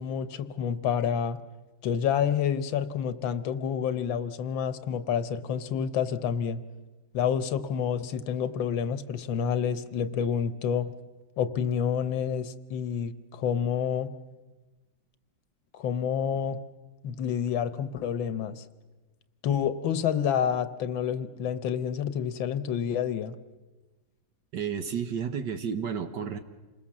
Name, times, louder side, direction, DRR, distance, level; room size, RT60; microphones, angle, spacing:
voice 1, 0.0-1.4 1.8-6.6 7.1-10.9 11.4-14.1 15.7-16.6 17.0-18.6 19.4-23.3, left 8 dB, 90° left, 12 dB, 1.7 m, -28 dB
voice 2, 24.5-26.4, right 7 dB, 70° right, 8 dB, 1.7 m, -31 dB
27.5 x 20.5 x 7.3 m, 1.2 s
omnidirectional pair, 2.0 m